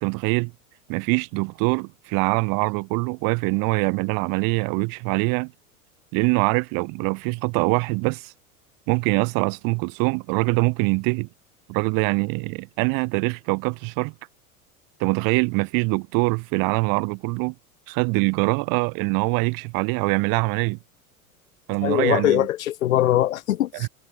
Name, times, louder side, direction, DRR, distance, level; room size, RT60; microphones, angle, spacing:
voice 1, 0.0-0.5 0.9-5.5 6.1-8.3 8.9-11.3 11.7-14.1 15.0-17.5 17.9-20.8 21.7-22.5 23.7-23.9, right 31 dB, 50° right, 2.8 m, -23 dB
voice 2, 21.8-23.9, left 13 dB, 70° left, 3.5 m, -21 dB
figure-of-eight pair, 85°, 43 cm